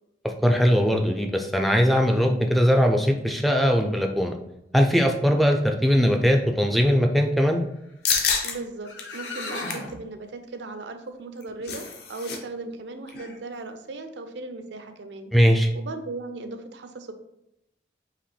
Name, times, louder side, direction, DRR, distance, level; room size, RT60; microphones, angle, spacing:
voice 1, 0.2-4.4 4.7-7.6 15.3-15.7, equal, ahead, 3 dB, 0.3 m, -20 dB
sound 1, 8.0-8.5 9.0-9.1 9.5-9.9 11.2-12.4 12.6-12.8 13.1-13.4, left 6 dB, 60° left, 0.7 m, -27 dB
voice 2, 8.4-15.3 15.7-17.1, right 3 dB, 75° right, 7 dB, 0.5 m, -37 dB
sound 2, 8.5-8.6 8.8-10.0, left 3 dB, 75° left, 1.1 m, -35 dB
4.9 x 2.9 x 3.2 m, 0.83 s
head